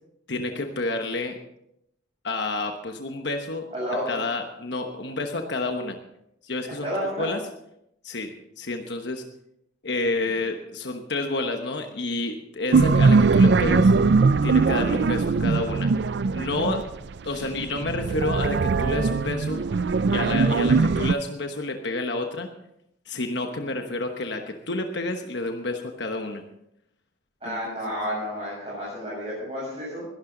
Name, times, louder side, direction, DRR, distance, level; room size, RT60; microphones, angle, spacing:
voice 1, 0.3-1.4 2.2-3.7 4.1-6.0 6.4-7.5 8.0-9.2 9.8-13.9 14.4-15.9 16.3-16.9 17.2-19.6 20.1-22.5 23.0-26.4 27.4-27.6, left 2 dB, 65° left, 5 dB, 1.1 m, -29 dB
voice 2, 3.7-4.2 6.8-7.3 17.3-17.5 27.4-30.1, equal, 30° right, -9 dB, 7.7 m, -31 dB
sound 1, 12.7-17.1 17.7-21.1, right 4 dB, 65° right, 0.4 m, -20 dB
21.0 x 12.0 x 3.9 m, 0.80 s
head